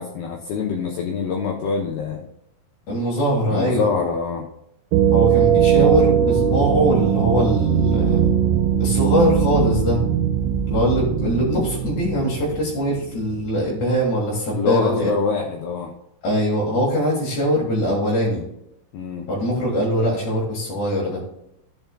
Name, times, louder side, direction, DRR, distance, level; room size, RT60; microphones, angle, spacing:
voice 1, 0.0-2.2 3.5-4.5 14.5-15.9 18.9-19.3, left 5 dB, 80° left, 0 dB, 2.3 m, -25 dB
voice 2, 2.9-3.9 5.1-8.3 8.8-10.0 10.7-15.1 16.2-18.4 19.3-21.2, equal, 55° left, -5 dB, 2.4 m, -22 dB
sound 1, 4.9-13.6, right 9 dB, 85° right, 3.2 m, -20 dB
12.5 x 7.0 x 2.3 m, 0.81 s
omnidirectional pair, 5.5 m